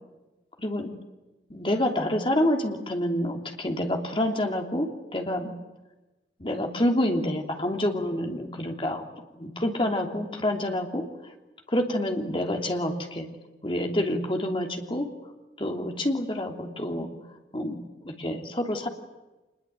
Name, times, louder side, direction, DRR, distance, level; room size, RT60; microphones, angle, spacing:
voice 1, 0.6-0.9 1.5-5.5 6.4-9.1 9.4-11.1 11.7-13.3 13.6-15.1 15.6-17.1 17.5-18.9, left 1 dB, 30° left, 3 dB, 3.1 m, -27 dB
26.0 x 21.5 x 9.3 m, 1.1 s
head